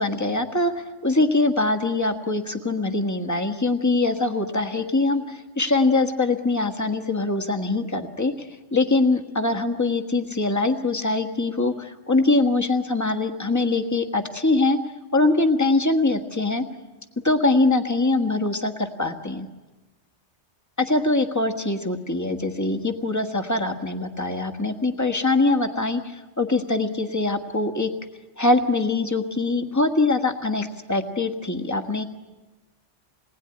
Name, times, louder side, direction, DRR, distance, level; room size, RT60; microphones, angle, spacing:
voice 1, 0.0-14.8 15.1-16.6 17.2-19.5 20.8-27.9 28.4-32.0, left 2 dB, 15° left, 6 dB, 1.5 m, -23 dB
28.0 x 20.0 x 9.8 m, 1.2 s
omnidirectional pair, 1.2 m